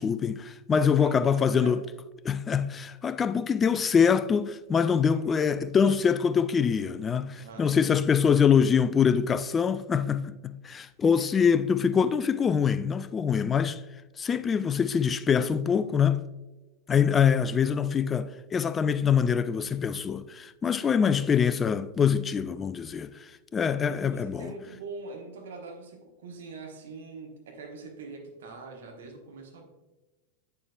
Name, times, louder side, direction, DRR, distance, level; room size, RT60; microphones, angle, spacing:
voice 1, 0.0-1.8 2.2-13.8 14.2-16.2 16.9-23.3 23.5-24.5, left 7 dB, 20° left, 0.3 m, -24 dB
voice 2, 0.7-1.8 4.8-5.5 7.3-8.0 23.8-29.6, right 4 dB, 60° right, 1.3 m, -44 dB
8.2 x 6.8 x 2.3 m
figure-of-eight pair, 90°, 0 cm